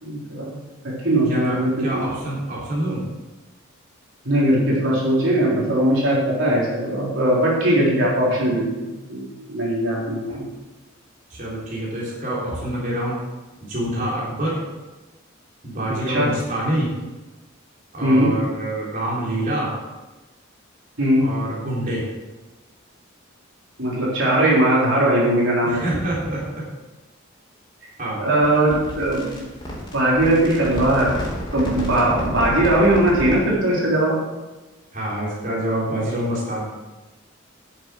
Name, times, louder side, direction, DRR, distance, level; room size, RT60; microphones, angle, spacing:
voice 1, 0.0-2.1 4.2-10.4 15.8-16.3 18.0-18.3 21.0-21.3 23.8-26.0 28.2-29.4 29.9-31.2 31.5-34.2, right 1 dB, 70° right, -5 dB, 3.9 m, -20 dB
voice 2, 1.3-3.0 10.3-10.4 11.3-13.2 13.6-14.6 15.6-17.0 17.9-19.8 21.2-22.1 25.6-26.6 28.0-28.6 32.0-32.2 34.9-36.6, right 1 dB, 40° right, -6 dB, 3.7 m, -26 dB
sound 1, 28.4-33.5, equal, 25° left, 3.5 m, -31 dB
12.5 x 7.2 x 6.3 m, 1.2 s
head